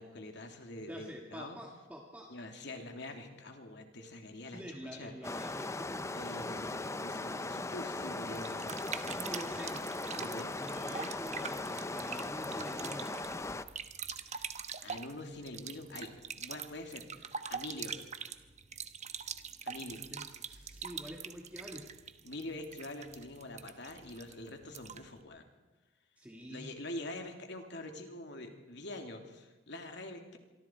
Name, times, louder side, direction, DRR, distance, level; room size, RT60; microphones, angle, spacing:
voice 1, 0.0-1.6 2.3-5.1 6.1-9.3 10.2-10.5 14.2-14.5 14.8-18.0 19.6-20.0 22.2-25.4 26.4-30.4, left 1 dB, 65° left, 4 dB, 2.8 m, -45 dB
voice 2, 0.9-2.3 4.5-6.1 9.0-9.8 10.6-13.1 20.1-21.9 26.2-26.7, equal, 10° right, 0 dB, 1.8 m, -46 dB
sound 1, 5.2-13.6, left 2 dB, 15° left, 0.6 m, -38 dB
sound 2, 8.3-25.2, right 6 dB, 35° right, 1.1 m, -44 dB
26.5 x 24.0 x 4.6 m, 1.1 s
head